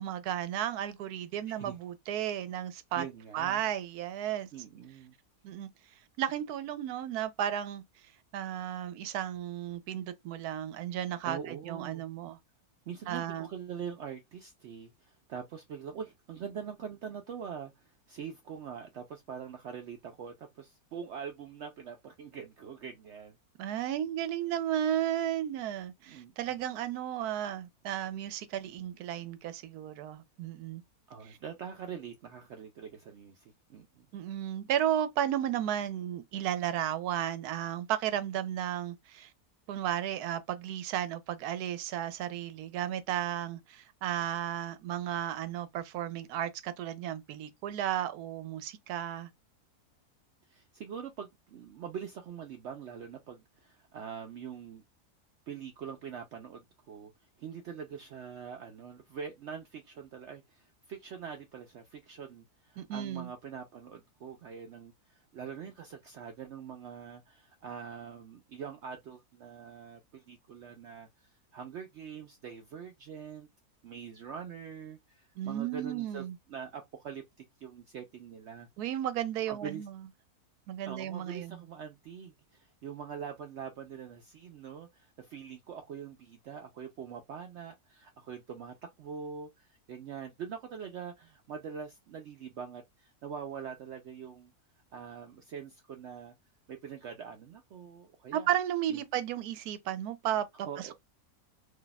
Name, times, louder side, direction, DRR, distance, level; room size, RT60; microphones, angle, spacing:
voice 1, 0.0-3.0 3.3-4.5 5.4-5.7 6.2-7.8 8.3-12.4 13.1-13.5 23.6-30.8 34.1-39.3 39.7-49.3 62.8-63.3 75.4-76.3 78.8-79.9 80.7-81.6 98.3-100.7, right 11 dB, 85° right, 1.1 m, -34 dB
voice 2, 2.9-3.6 4.5-5.1 11.2-12.1 12.9-23.4 26.1-26.6 31.1-34.1 50.5-54.8 55.5-57.1 57.4-73.5 73.8-76.2 76.5-78.7 79.5-79.9 80.9-94.5 94.9-96.3 96.7-98.5 98.9-99.0 100.6-100.9, right 7 dB, 70° right, 0.7 m, -44 dB
2.7 x 2.2 x 3.9 m
omnidirectional pair, 1.6 m